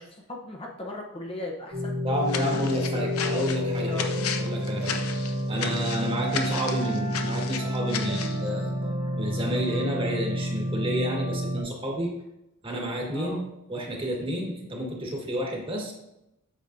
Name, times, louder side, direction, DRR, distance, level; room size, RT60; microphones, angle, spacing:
voice 1, 0.0-1.9 2.4-3.1 3.9-4.2 5.6-5.9 13.1-13.5, left 2 dB, 25° left, 0 dB, 0.8 m, -38 dB
sound 1, 1.7-11.6, equal, 80° right, 2.5 m, -29 dB
voice 2, 2.0-4.1 4.4-8.8 9.1-12.1 12.6-13.4 13.7-15.9, equal, 25° right, 0 dB, 1.5 m, -30 dB
sound 2, 2.3-8.4, left 7 dB, 85° left, 0.7 m, -34 dB
8.5 x 6.2 x 2.6 m, 0.87 s
head